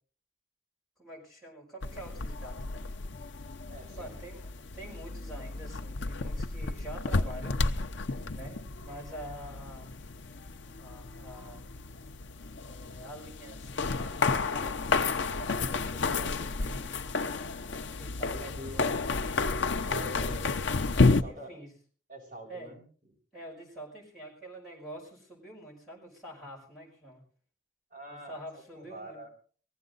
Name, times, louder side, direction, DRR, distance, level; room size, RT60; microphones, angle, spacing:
voice 1, 1.0-2.9 4.0-7.6 8.3-9.9 10.8-11.7 12.7-16.9 17.9-18.9 20.0-20.6 21.2-21.7 22.5-22.7 23.3-27.2 28.1-29.2, right 1 dB, ahead, -6 dB, 5.8 m, -46 dB
sound 1, 1.8-21.2, left 3 dB, 75° left, 0.7 m, -31 dB
voice 2, 3.7-4.2 18.2-18.8 19.9-20.7 21.1-21.5 22.1-22.8 27.9-29.3, right 1 dB, 40° right, -1 dB, 6.9 m, -45 dB
19.5 x 15.0 x 4.0 m, 0.43 s
head